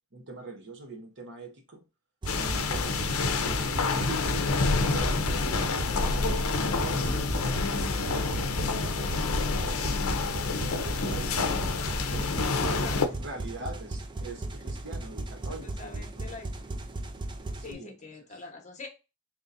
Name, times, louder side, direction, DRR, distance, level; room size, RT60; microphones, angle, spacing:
voice 1, 0.1-1.8 2.4-3.0 3.4-10.1 10.4-11.7 12.1-16.2 17.7-17.9, right 2 dB, 55° right, 1.0 m, -43 dB
sound 1, 2.2-17.7, right 2 dB, 20° right, 0.4 m, -37 dB
sound 2, 2.3-13.1, left 4 dB, 70° left, 0.6 m, -28 dB
voice 2, 12.2-13.1 14.7-14.8 15.5-16.7 17.6-18.9, left 3 dB, 35° left, 1.0 m, -44 dB
4.0 x 3.0 x 2.5 m
head